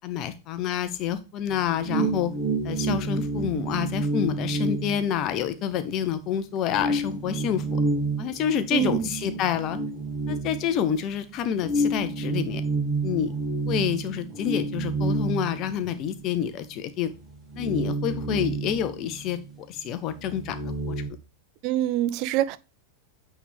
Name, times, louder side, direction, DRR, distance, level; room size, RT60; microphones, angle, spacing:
voice 1, 0.0-2.3 2.6-7.8 8.2-9.8 10.3-12.6 13.0-13.3 13.7-17.1 17.6-19.4 19.7-20.9, left 9 dB, 35° left, 0.8 m, -28 dB
sound 1, 1.5-5.8 6.2-6.3 6.7-11.1 11.6-16.3 16.6-16.7 17.1-19.6 19.9-21.1, right 2 dB, 15° right, 2.1 m, -29 dB
voice 2, 8.7-9.0 21.6-22.6, right 12 dB, 40° right, 0.3 m, -25 dB
8.4 x 3.6 x 3.6 m
figure-of-eight pair, 90°, 0 cm